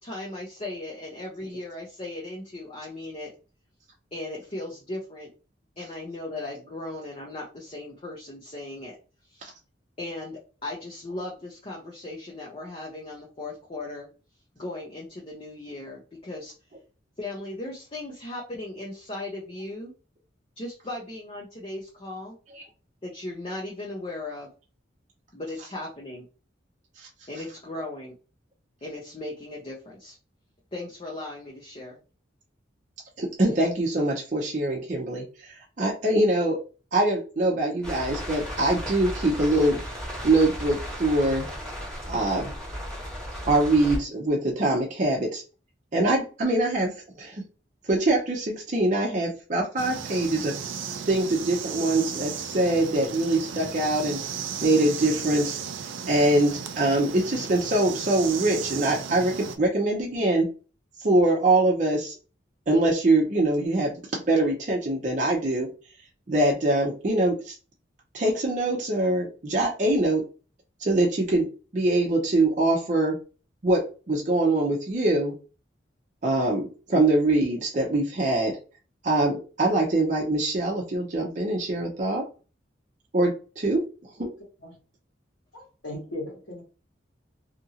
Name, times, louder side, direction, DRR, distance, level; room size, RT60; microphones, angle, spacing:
voice 1, 0.0-3.3 4.1-5.3 5.8-9.0 9.3-9.5 10.0-14.1 14.6-16.5 17.2-19.9 20.6-22.4 23.0-24.5 25.3-26.2 27.3-28.2 28.8-30.2 30.7-32.0, left 2 dB, 30° left, -2 dB, 0.6 m, -37 dB
voice 2, 33.2-35.2 35.5-36.6 36.9-39.8 40.2-41.5 42.1-42.5 43.5-45.4 45.9-46.9 47.2-47.4 47.9-50.6 51.1-54.2 54.6-55.6 56.1-60.5 61.0-62.1 62.7-65.7 66.3-67.5 68.1-70.2 70.8-71.5 71.7-73.2 73.6-75.3 76.2-78.6 79.0-82.3 83.1-83.8 84.2-84.3, right 2 dB, 40° right, -2 dB, 0.6 m, -23 dB
sound 1, 37.8-44.0, equal, 5° left, 1.1 m, -35 dB
sound 2, 49.8-59.6, right 7 dB, 90° right, 0.4 m, -35 dB
voice 3, 85.5-86.6, left 1 dB, 80° left, -5 dB, 1.4 m, -37 dB
2.8 x 2.5 x 2.7 m, 0.35 s
head